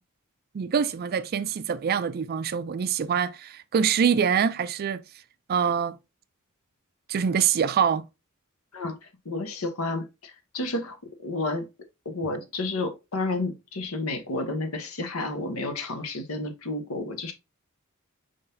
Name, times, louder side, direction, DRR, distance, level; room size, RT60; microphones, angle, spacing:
voice 1, 0.5-5.0 5.5-6.0 7.1-8.0, right 7 dB, 45° right, 0.3 m, -25 dB
voice 2, 8.7-11.0 11.2-11.7 12.0-17.3, left 2 dB, 80° left, 1.0 m, -31 dB
5.0 x 3.9 x 2.7 m
head